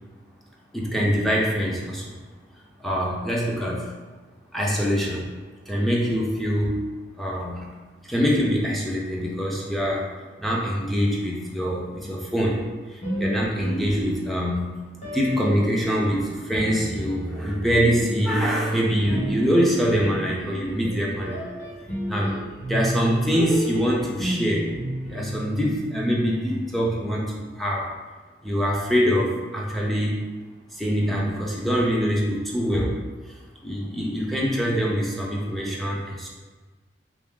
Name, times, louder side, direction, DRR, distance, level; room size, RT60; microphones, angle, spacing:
voice 1, 0.7-2.1 2.8-3.9 4.5-5.3 5.7-6.8 7.2-7.7 8.0-10.1 10.4-12.6 12.9-14.7 15.1-21.4 22.1-22.3 22.7-24.7 25.1-27.9 28.4-30.2 30.7-33.0 33.6-36.3, equal, ahead, -4 dB, 0.4 m, -24 dB
sound 1, 13.0-14.5 15.0-27.2, right 1 dB, 40° left, 0.9 m, -32 dB
3.1 x 2.5 x 3.6 m, 1.3 s
head